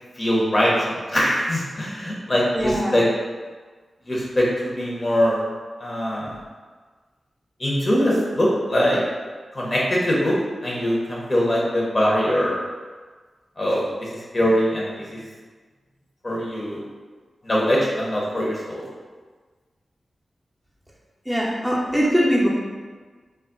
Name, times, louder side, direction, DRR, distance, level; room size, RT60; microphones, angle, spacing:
voice 1, 0.2-3.0 4.1-5.4 5.8-6.3 7.6-9.0 9.5-10.3 10.6-12.5 13.6-15.2 16.2-16.8 17.4-18.9, equal, 45° left, -5 dB, 0.9 m, -22 dB
voice 2, 2.5-3.0 21.3-22.5, equal, 10° right, -5 dB, 0.7 m, -21 dB
2.3 x 2.1 x 3.9 m, 1.4 s
cardioid pair, 40°, 0 cm